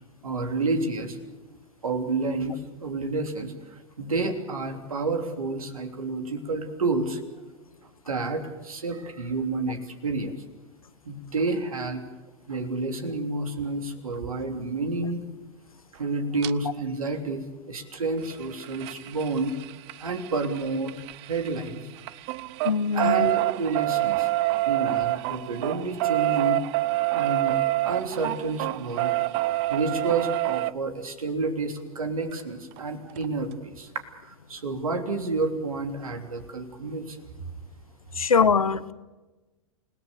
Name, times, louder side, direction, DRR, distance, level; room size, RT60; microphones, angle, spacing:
voice 1, 0.2-1.4 1.8-7.2 8.1-10.4 11.0-12.0 12.5-15.2 15.9-19.5 20.0-20.9 21.3-21.8 22.9-24.3 24.6-26.6 27.1-27.6 27.8-29.2 29.7-33.9 34.2-37.2, right 3 dB, 85° right, 5 dB, 3.3 m, -30 dB
sound 1, 16.4-16.5 18.2-21.7 22.0-30.7 32.4-32.5 32.8-32.9 33.2-33.3, right 19 dB, 50° right, 0.7 m, -27 dB
voice 2, 22.6-23.3 38.2-38.9, left 5 dB, 90° left, 16 dB, 1.0 m, -22 dB
28.5 x 18.5 x 6.9 m, 1.2 s
hypercardioid pair, 100°, 18 cm